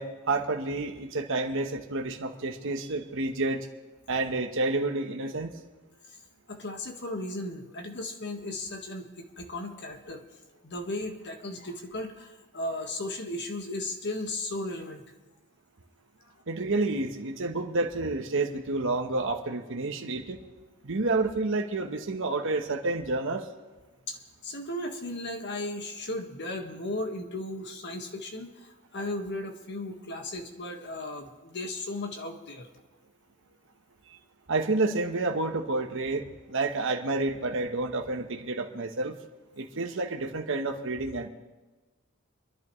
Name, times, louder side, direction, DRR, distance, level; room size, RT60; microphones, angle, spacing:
voice 1, 0.0-3.7 4.1-5.5 16.5-20.4 20.8-23.5 34.5-39.2 39.6-41.3, right 2 dB, 65° right, 3 dB, 1.1 m, -29 dB
voice 2, 6.5-10.2 10.6-15.0 24.1-24.2 24.4-32.7, left 1 dB, 55° left, 4 dB, 1.6 m, -36 dB
27.0 x 11.0 x 3.2 m, 1.2 s
head